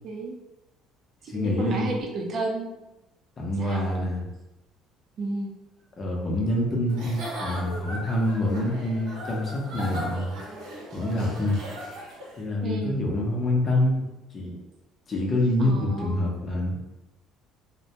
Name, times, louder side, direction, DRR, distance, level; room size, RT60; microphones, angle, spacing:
voice 1, 0.0-0.3 1.2-2.7 3.6-3.9 5.2-5.5 12.6-13.0 15.6-16.3, right 2 dB, 50° right, 0 dB, 0.5 m, -32 dB
voice 2, 1.3-1.9 3.4-4.3 6.0-10.4 10.9-11.6 12.4-14.0 14.3-14.6 15.1-16.8, left 1 dB, 35° left, -2 dB, 0.6 m, -26 dB
Giggle / Chuckle chortle, 6.9-12.4, equal, 85° right, 0.7 m, -38 dB
2.1 x 2.1 x 2.7 m, 0.99 s
cardioid pair, 120°, 0 cm